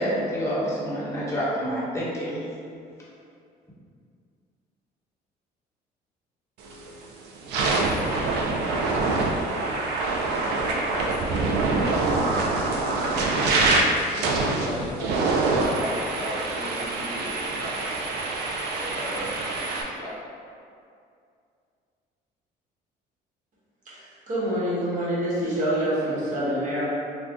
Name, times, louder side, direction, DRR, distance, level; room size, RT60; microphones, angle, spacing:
voice 1, 0.0-2.4, equal, 15° left, -7 dB, 0.9 m, -27 dB
sound 1, 6.6-6.9 7.4-19.8, right 3 dB, 80° right, 0.4 m, -25 dB
voice 2, 10.4-11.6 12.0-13.7 14.4-18.1 18.6-20.2, equal, 50° left, -7 dB, 0.9 m, -38 dB
voice 3, 23.9-26.8, equal, 50° right, -8 dB, 1.2 m, -26 dB
2.6 x 2.3 x 3.4 m, 2.4 s
cardioid pair, 110°, 17 cm